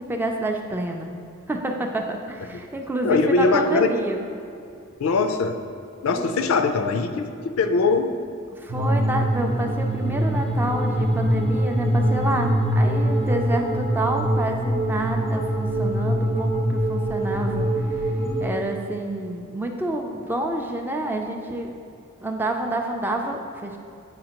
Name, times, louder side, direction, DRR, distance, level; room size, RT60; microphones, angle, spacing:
voice 1, 0.1-1.1 1.5-4.2 6.1-6.4 8.5-18.1 18.4-21.7 22.2-23.8, right 1 dB, 10° right, 2 dB, 0.3 m, -28 dB
voice 2, 3.0-3.9 5.0-5.6 6.0-8.1, left 3 dB, 70° left, 8 dB, 0.4 m, -21 dB
sound 1, 8.7-18.5, right 1 dB, 45° right, 0.8 m, -23 dB
7.5 x 4.9 x 2.9 m, 2.6 s
head